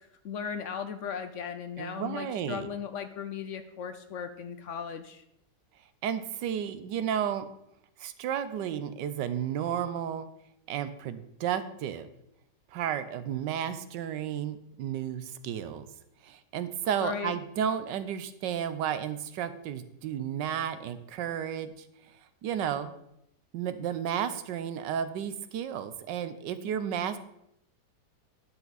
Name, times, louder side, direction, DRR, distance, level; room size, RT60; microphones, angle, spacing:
voice 1, 0.0-5.2 17.0-17.4, left 7 dB, 65° left, 9 dB, 0.7 m, -37 dB
voice 2, 1.8-2.7 6.0-7.4 8.0-10.3 10.7-12.1 12.7-15.9 16.2-21.7 22.4-22.9 23.5-27.2, right 9 dB, 90° right, 12 dB, 1.4 m, -32 dB
11.0 x 6.9 x 4.0 m, 0.80 s
omnidirectional pair, 1.9 m